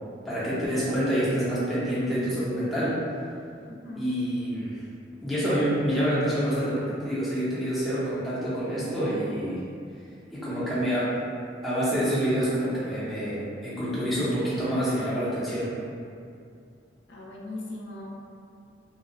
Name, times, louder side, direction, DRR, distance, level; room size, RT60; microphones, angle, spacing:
voice 1, 0.2-3.0 4.0-4.8 5.2-9.6 10.3-11.2 11.6-15.7, equal, ahead, -11 dB, 0.5 m, -27 dB
voice 2, 3.7-4.1 17.1-18.2, left 2 dB, 75° left, -4 dB, 0.4 m, -39 dB
2.6 x 2.0 x 2.5 m, 2.4 s
head